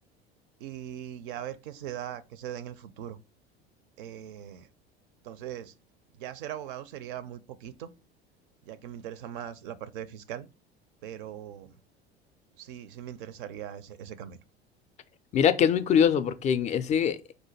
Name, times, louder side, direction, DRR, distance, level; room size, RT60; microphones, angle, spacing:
voice 1, 0.6-3.2 4.0-4.7 5.2-5.7 6.1-7.9 8.7-10.5 11.0-11.8 12.6-14.4, right 10 dB, 55° right, 0.5 m, -40 dB
voice 2, 15.3-17.3, left 8 dB, 25° left, 0.4 m, -23 dB
4.9 x 2.2 x 4.4 m
figure-of-eight pair, 70°, 31 cm